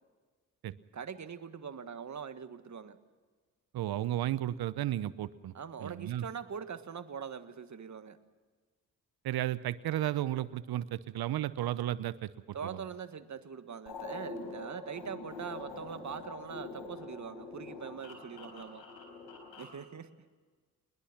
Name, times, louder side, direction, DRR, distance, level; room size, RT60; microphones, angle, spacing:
voice 1, 0.9-3.0 5.5-8.2 12.5-18.8 19.6-20.3, right 7 dB, 45° right, 10 dB, 1.6 m, -43 dB
voice 2, 3.7-5.5 5.8-6.3 9.2-12.3 12.6-12.8, right 13 dB, 65° right, 16 dB, 0.9 m, -33 dB
sound 1, 13.9-19.8, left 3 dB, 75° left, 4.8 m, -45 dB
21.5 x 20.5 x 6.0 m, 1.4 s
hypercardioid pair, 40°, 41 cm